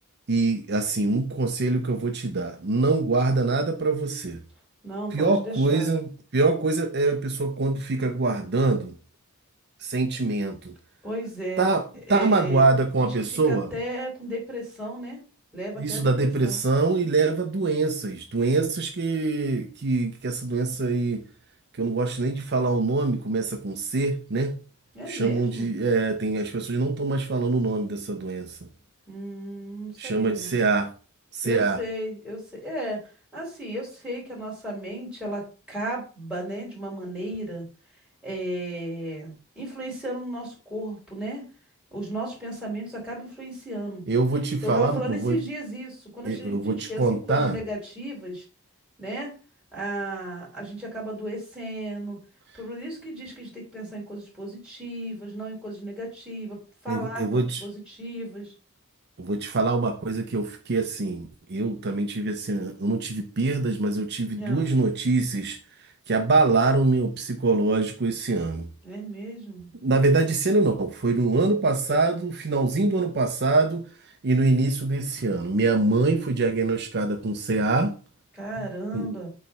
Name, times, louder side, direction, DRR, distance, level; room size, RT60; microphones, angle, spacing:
voice 1, 0.3-4.4 5.1-8.9 9.8-10.7 11.6-11.8 12.1-13.7 15.8-21.2 21.8-24.6 25.1-28.6 30.0-30.9 31.3-31.8 44.1-45.4 46.2-47.6 56.9-57.6 59.2-65.6 66.1-68.7 69.8-77.9 78.6-78.7 78.9-79.1, right 3 dB, 50° right, 0.7 m, -24 dB
voice 2, 4.8-5.9 11.0-11.7 12.1-12.6 13.0-13.1 13.4-15.2 15.5-16.6 24.9-25.7 29.1-30.6 31.4-33.0 33.3-37.7 38.2-41.4 41.9-44.0 44.6-47.0 47.3-48.4 49.0-49.3 49.7-52.2 52.5-56.6 56.8-57.2 57.6-58.5 64.4-64.7 68.8-69.7 78.3-79.3, right 1 dB, 5° right, 3.8 m, -34 dB
8.3 x 3.2 x 5.5 m
head